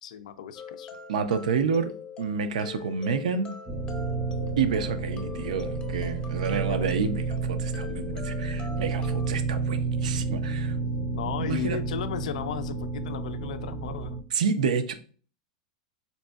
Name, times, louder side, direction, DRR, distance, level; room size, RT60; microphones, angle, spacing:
voice 1, 0.0-0.9 6.5-6.9 11.1-14.2, left 9 dB, 80° left, 12 dB, 0.3 m, -35 dB
sound 1, 0.6-9.3, left 5 dB, 25° left, 0.6 m, -42 dB
voice 2, 1.1-1.9 2.2-3.5 4.6-10.7 11.4-11.8 14.3-14.9, right 6 dB, 80° right, 10 dB, 0.4 m, -29 dB
sound 2, 3.7-14.2, right 4 dB, 15° right, 0.5 m, -31 dB
4.0 x 2.6 x 2.2 m, 0.42 s
hypercardioid pair, 110°, 4 cm